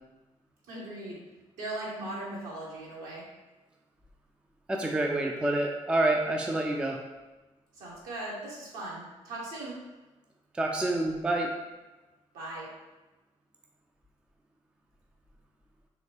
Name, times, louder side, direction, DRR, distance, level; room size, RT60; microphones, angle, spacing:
voice 1, 0.7-1.2 1.6-3.2 7.7-9.8 12.3-12.7, right 2 dB, 60° right, -4 dB, 0.9 m, -38 dB
voice 2, 4.7-7.0 10.5-11.5, right 2 dB, 5° right, 1 dB, 0.4 m, -27 dB
2.9 x 2.9 x 2.9 m, 1.1 s
figure-of-eight pair, 40°, 17 cm